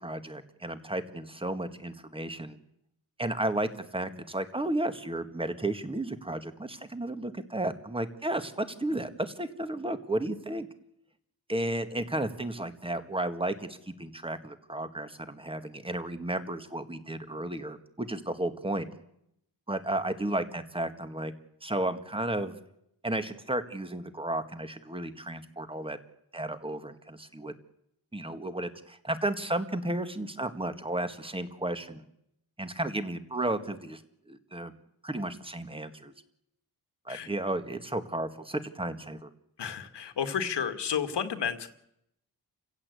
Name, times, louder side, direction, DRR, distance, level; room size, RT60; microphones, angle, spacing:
voice 1, 0.0-2.6 3.2-10.7 11.5-18.9 19.7-21.3 21.6-22.5 23.0-26.0 26.3-27.5 28.1-32.0 32.6-34.0 34.3-34.7 35.0-36.1 37.1-39.3, right 1 dB, 15° right, 9 dB, 1.9 m, -33 dB
voice 2, 39.6-41.7, left 7 dB, 85° left, 9 dB, 2.1 m, -31 dB
29.5 x 16.0 x 8.4 m, 0.80 s
wide cardioid pair, 105°, 40 cm